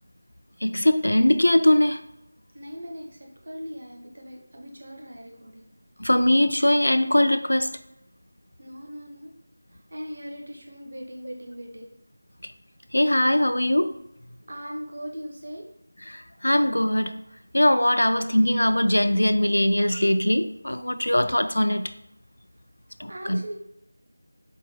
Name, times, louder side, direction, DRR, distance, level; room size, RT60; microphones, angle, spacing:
voice 1, 0.6-2.0 6.0-7.8 12.9-13.9 16.1-17.2 17.5-21.9 23.0-23.4, left 1 dB, 80° left, 9 dB, 0.3 m, -21 dB
voice 2, 2.5-5.7 8.6-9.3 9.7-11.9 14.4-15.6 23.1-23.5, equal, 55° right, 1 dB, 0.7 m, -39 dB
4.4 x 2.1 x 3.0 m, 0.80 s
figure-of-eight pair, 170°, 0 cm